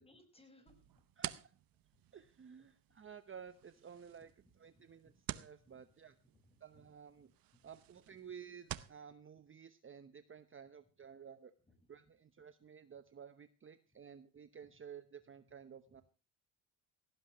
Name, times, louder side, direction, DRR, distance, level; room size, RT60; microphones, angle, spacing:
voice 1, 0.0-1.0 4.4-5.2 5.6-5.8 6.3-6.9 7.6-7.8 8.3-8.4 11.7-11.8 13.9-14.0 14.6-14.7 15.9-16.0, left 2 dB, 15° left, 7 dB, 5.4 m, -67 dB
sound 1, 0.7-9.0, right 13 dB, 55° right, 0.9 m, -50 dB
voice 2, 1.2-1.5 2.1-4.3 4.6-6.2 6.6-7.3 7.6-11.5 11.9-16.0, right 7 dB, 30° right, 11 dB, 1.0 m, -54 dB
17.5 x 16.0 x 3.1 m, 0.32 s
cardioid pair, 100°, 41 cm